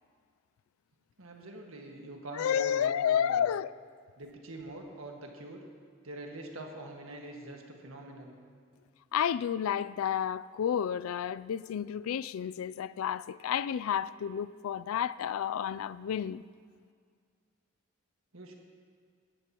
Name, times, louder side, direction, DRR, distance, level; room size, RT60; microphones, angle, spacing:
voice 1, 1.2-3.5 4.2-5.6 6.0-8.4 18.3-18.5, right 1 dB, 85° right, 1.7 m, -44 dB
voice 2, 2.3-3.7 9.1-16.4, left 8 dB, 90° left, 0.3 m, -31 dB
18.0 x 13.0 x 3.0 m
head